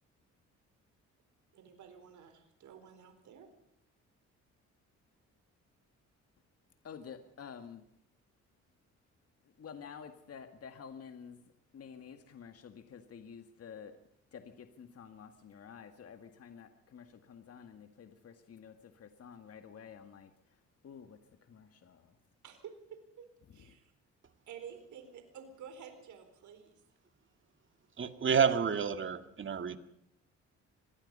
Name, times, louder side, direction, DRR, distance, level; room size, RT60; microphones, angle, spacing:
voice 1, 1.5-3.5 22.4-23.9 24.5-26.7, right 7 dB, 75° right, 7 dB, 4.3 m, -51 dB
voice 2, 6.8-7.9 9.4-14.0 14.3-22.2 23.5-23.8, left 7 dB, 50° left, 8 dB, 1.9 m, -50 dB
voice 3, 28.0-29.8, right 6 dB, 40° right, 9 dB, 2.1 m, -29 dB
25.0 x 19.0 x 5.5 m, 0.76 s
cardioid pair, 90°, 30 cm